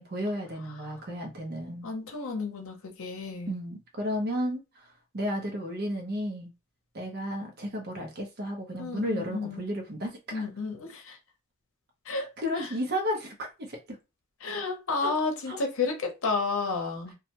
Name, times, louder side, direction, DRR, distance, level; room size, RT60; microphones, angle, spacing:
voice 1, 0.0-1.9 3.5-6.5 6.9-10.5 12.1-14.0 15.0-15.1 15.5-15.6, equal, 45° right, 0.7 m, -33 dB
voice 2, 1.8-3.6 8.7-9.6 10.3-11.2 12.1-12.3 12.6-12.7 14.4-17.2, left 4 dB, 65° left, 0.7 m, -31 dB
2.3 x 2.1 x 2.8 m
head